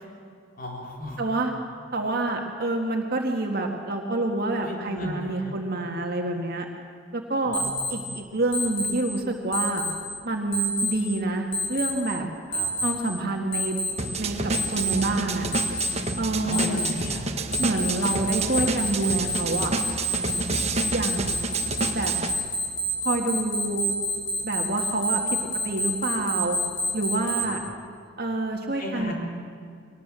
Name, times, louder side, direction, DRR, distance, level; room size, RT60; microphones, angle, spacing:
voice 1, 0.6-1.2 4.6-5.6 7.5-7.7 12.5-12.7 16.4-17.3 27.4-27.5 28.8-29.1, left 1 dB, 45° left, 0 dB, 3.9 m, -34 dB
voice 2, 1.2-1.5 1.9-6.7 7.1-7.6 7.9-9.8 10.2-12.2 12.8-13.8 14.2-15.5 16.2-16.9 17.6-19.7 20.9-21.4 21.9-22.1 23.0-23.9 24.4-25.4 25.6-26.6 26.9-27.6 28.2-29.1, right 2 dB, 50° right, 2 dB, 1.7 m, -27 dB
Alarm, 7.5-7.9 8.5-8.9 9.5-9.9 10.5-10.9 11.5-11.9 12.5-12.9 13.5-13.9 14.5-14.9 15.5-15.9 16.5-16.9 17.5-27.4, equal, 70° left, 5.6 m, -27 dB
sound 1, 14.0-22.3, right 3 dB, 35° right, 1.2 m, -29 dB
22.0 x 19.0 x 7.5 m, 2.2 s
head